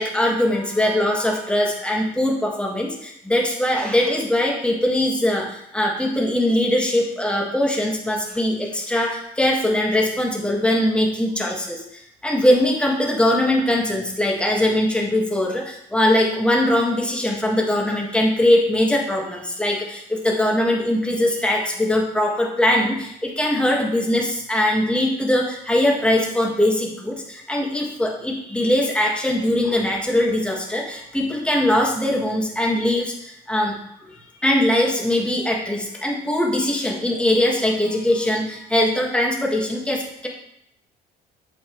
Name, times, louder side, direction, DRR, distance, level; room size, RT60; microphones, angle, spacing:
voice 1, 0.0-33.8 34.1-40.3, left 1 dB, 5° left, -1 dB, 1.7 m, -21 dB
8.2 x 7.2 x 3.1 m, 0.76 s
cardioid pair, 110°, 17 cm